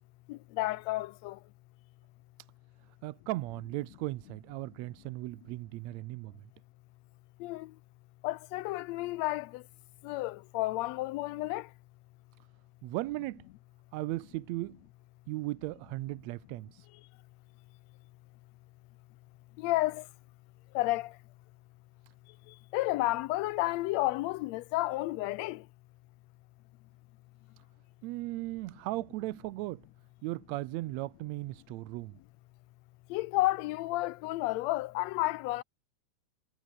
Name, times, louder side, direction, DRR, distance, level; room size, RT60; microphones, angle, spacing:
voice 1, 0.3-1.4 7.4-7.7 8.2-9.6 10.0-11.7 19.6-20.0 20.7-21.1 22.7-25.6 33.1-35.6, left 18 dB, 80° left, 1.7 m, -31 dB
voice 2, 3.0-6.3 12.8-13.5 13.9-14.8 15.3-16.9 28.0-29.9 30.2-32.2, right 18 dB, 75° right, 1.8 m, -37 dB
omnidirectional pair, 3.4 m